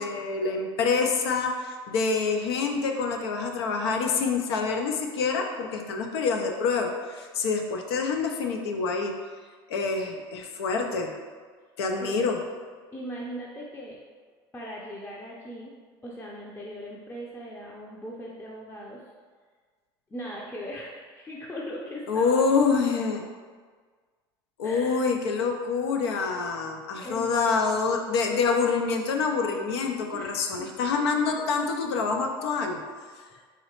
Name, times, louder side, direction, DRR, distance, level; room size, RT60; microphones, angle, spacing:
voice 1, 0.0-9.1 9.7-11.1 11.8-12.4 22.1-23.2 24.6-32.8, left 4 dB, 80° left, 3 dB, 0.5 m, -26 dB
voice 2, 12.9-14.0 14.5-15.7 16.0-19.0 20.1-22.4 24.6-25.0 27.0-27.3 30.1-30.7, equal, 15° left, -3 dB, 0.5 m, -39 dB
3.7 x 3.2 x 2.9 m, 1.6 s
hypercardioid pair, 75°, 13 cm